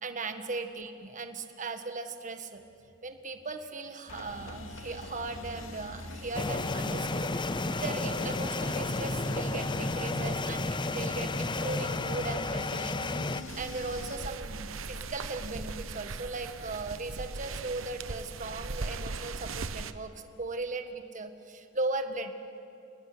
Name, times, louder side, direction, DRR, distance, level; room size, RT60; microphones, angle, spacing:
voice 1, 0.0-2.6 3.0-22.3, right 3 dB, 40° right, 7 dB, 1.8 m, -38 dB
sound 1, 4.1-14.2, left 2 dB, 75° left, 2.5 m, -44 dB
sound 2, 6.3-13.4, left 2 dB, 25° left, 0.7 m, -32 dB
sound 3, 13.5-19.9, right 3 dB, 85° right, 1.1 m, -39 dB
28.0 x 19.5 x 9.7 m, 2.7 s
head